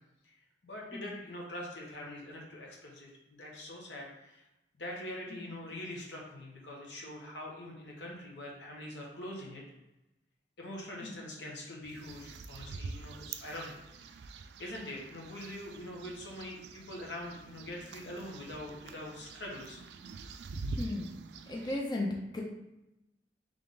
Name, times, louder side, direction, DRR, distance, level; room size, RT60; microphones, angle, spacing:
voice 1, 0.6-4.4 4.8-9.6 10.6-14.2 14.6-19.8, left 1 dB, 85° left, -2 dB, 1.2 m, -44 dB
sound 1, 11.9-21.8, right 3 dB, 70° right, 0.3 m, -45 dB
voice 2, 20.8-22.4, left 2 dB, 25° left, -1 dB, 0.5 m, -36 dB
3.5 x 3.5 x 3.8 m, 0.93 s
head